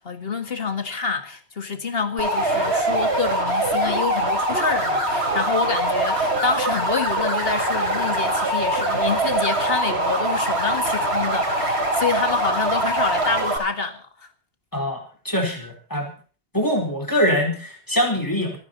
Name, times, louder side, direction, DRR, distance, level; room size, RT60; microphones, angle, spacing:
voice 1, 0.0-14.1, left 5 dB, 60° left, 2.1 m, -27 dB
sound 1, 2.2-13.6, right 1 dB, 70° right, 4.8 m, -23 dB
voice 2, 14.7-16.1 16.5-18.6, equal, 15° left, 4.6 m, -23 dB
28.0 x 9.7 x 4.2 m
omnidirectional pair, 1.1 m